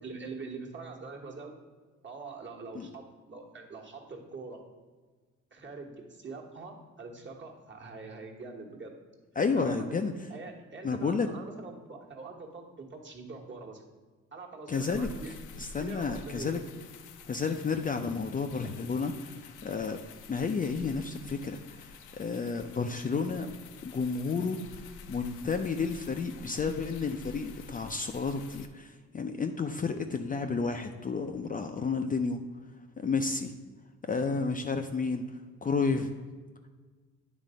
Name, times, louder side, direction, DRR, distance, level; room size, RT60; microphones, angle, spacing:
voice 1, 0.0-1.6 2.0-4.6 5.5-8.9 9.5-10.0 10.3-13.8 14.3-15.3 15.7-16.6, right 4 dB, 40° right, 0 dB, 1.4 m, -44 dB
voice 2, 9.4-10.1 10.8-11.3 14.7-15.1 15.6-16.6 17.3-20.0 20.3-21.9 22.2-23.5 23.8-24.6 25.1-32.4 33.0-33.5 34.1-35.3 35.6-36.1, left 4 dB, 30° left, 6 dB, 0.4 m, -31 dB
sound 1, 14.7-28.7, left 4 dB, 80° left, 0.6 m, -49 dB
9.0 x 3.3 x 5.0 m, 1.4 s
cardioid pair, 90°, 30 cm